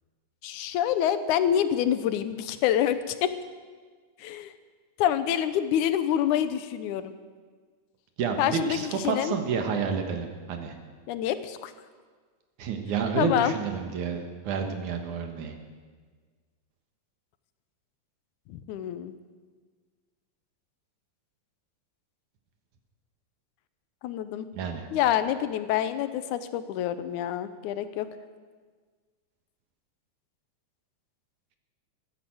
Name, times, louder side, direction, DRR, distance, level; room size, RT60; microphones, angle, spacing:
voice 1, 0.4-3.3 4.2-4.5 5.0-7.1 8.4-9.4 11.1-11.7 13.2-13.5 18.5-19.1 24.0-24.5 24.9-28.1, left 10 dB, 85° left, 12 dB, 2.2 m, -27 dB
voice 2, 8.2-10.7 12.6-15.6 24.5-24.9, right 5 dB, 80° right, 5 dB, 2.9 m, -29 dB
15.5 x 11.0 x 7.8 m, 1.5 s
omnidirectional pair, 3.4 m